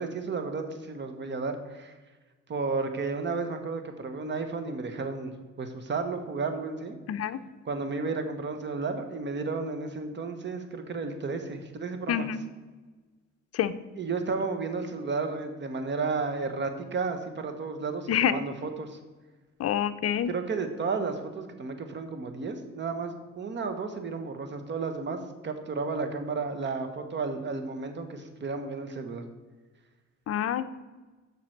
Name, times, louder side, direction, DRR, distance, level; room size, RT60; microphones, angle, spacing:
voice 1, 0.0-1.9 2.5-7.0 7.6-12.3 14.0-19.0 20.3-29.2, right 4 dB, 40° right, 7 dB, 1.2 m, -33 dB
voice 2, 7.1-7.4 12.1-12.4 13.5-13.7 18.1-18.4 19.6-20.3 30.3-30.6, left 9 dB, 55° left, 11 dB, 0.6 m, -27 dB
7.5 x 6.0 x 6.5 m, 1.3 s
cardioid pair, 115°, 30 cm